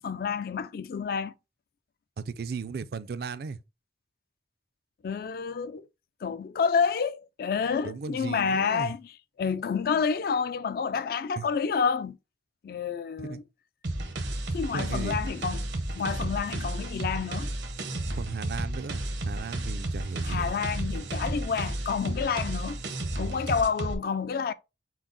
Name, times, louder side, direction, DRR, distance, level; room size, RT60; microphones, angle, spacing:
voice 1, 0.0-1.3 5.0-5.9 6.2-9.1 9.4-12.2 12.6-13.4 14.5-15.7 16.0-17.5 20.2-22.8 23.2-24.5, left 6 dB, 55° left, 0.3 m, -29 dB
voice 2, 2.2-3.6 7.8-8.9 11.4-11.5 13.2-13.4 14.7-15.2 18.1-20.5, right 5 dB, 60° right, 0.4 m, -36 dB
sound 1, 13.8-23.9, right 1 dB, 80° right, 0.9 m, -32 dB
6.0 x 2.0 x 3.8 m
head